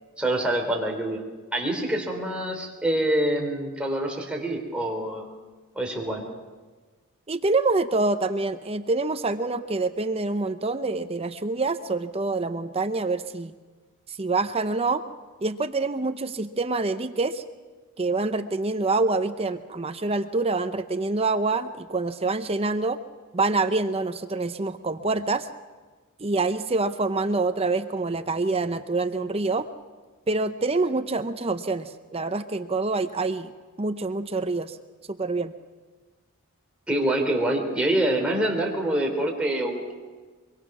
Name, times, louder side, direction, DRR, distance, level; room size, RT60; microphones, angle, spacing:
voice 1, 0.2-1.2 1.5-5.2 5.7-6.2 36.9-39.9, right 1 dB, 5° right, 0 dB, 3.5 m, -26 dB
voice 2, 7.3-13.5 14.1-15.0 15.4-17.4 18.0-23.0 23.3-25.5 26.2-29.7 30.3-33.5 33.8-34.8 35.2-35.5, right 3 dB, 25° right, 10 dB, 0.7 m, -26 dB
24.0 x 23.0 x 6.1 m, 1.4 s
head